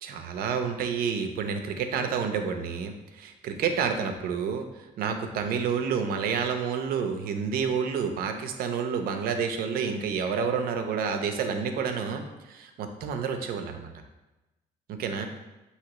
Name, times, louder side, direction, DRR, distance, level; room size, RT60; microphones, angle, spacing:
voice 1, 0.0-4.7 5.0-13.9 14.9-15.3, right 6 dB, 80° right, 6 dB, 0.6 m, -29 dB
5.8 x 2.9 x 3.0 m, 1.0 s
cardioid pair, 85°, 15 cm